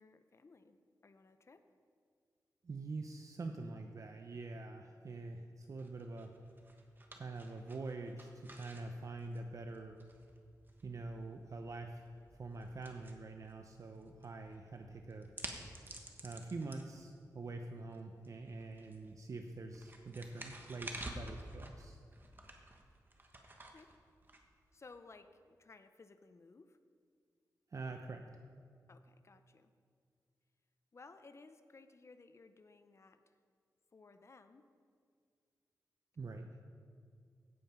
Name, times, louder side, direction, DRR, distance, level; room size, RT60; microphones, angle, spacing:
voice 1, 0.0-1.6 23.7-23.9 24.7-26.8 28.9-29.7 30.9-33.2 33.9-34.7, left 3 dB, 40° left, 10 dB, 0.6 m, -59 dB
voice 2, 2.6-6.3 7.2-10.0 10.8-12.1 12.4-15.3 16.2-22.0 27.7-28.2 36.2-36.5, right 3 dB, 50° right, 5 dB, 0.7 m, -45 dB
sound 1, 5.8-25.0, right 1 dB, 30° right, 1.3 m, -53 dB
16.0 x 5.7 x 5.6 m, 2.2 s
wide cardioid pair, 95°, 7 cm